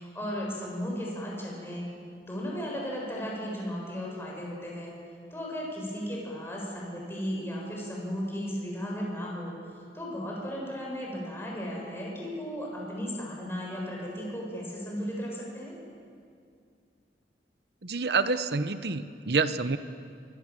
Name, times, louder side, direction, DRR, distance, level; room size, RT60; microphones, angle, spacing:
voice 1, 0.0-1.8 2.2-4.9 5.3-9.5 9.9-15.7, equal, 15° left, -3 dB, 7.5 m, -35 dB
voice 2, 17.8-19.8, right 4 dB, 65° right, 11 dB, 0.9 m, -27 dB
25.0 x 23.5 x 7.7 m, 2.3 s
head